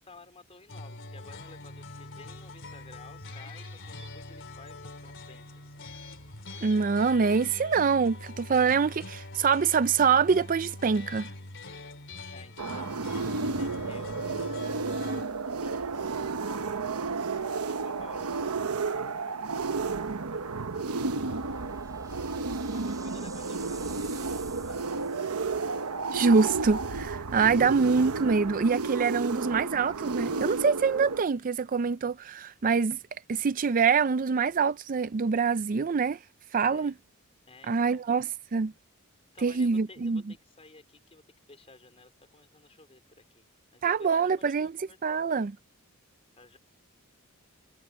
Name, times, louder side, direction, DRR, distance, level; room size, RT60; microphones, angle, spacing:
voice 1, 0.0-5.9 12.3-15.2 15.6-16.6 17.6-19.4 20.3-22.0 22.7-25.3 36.6-36.9 37.5-38.0 39.3-41.2 41.5-43.5 43.7-45.3 46.4-46.6, left 3 dB, 25° left, 4.0 m, -55 dB
sound 1, 0.7-15.2, left 2 dB, 55° left, 3.5 m, -43 dB
voice 2, 6.6-11.3 26.1-33.0 33.3-36.2 36.5-36.9 37.7-38.7 39.4-40.2 43.8-44.7 45.0-45.5, right 5 dB, 40° right, 0.4 m, -25 dB
sound 2, 12.6-31.2, right 4 dB, 85° right, 1.0 m, -32 dB
sound 3, 21.3-25.8, right 5 dB, 15° right, 7.0 m, -50 dB
head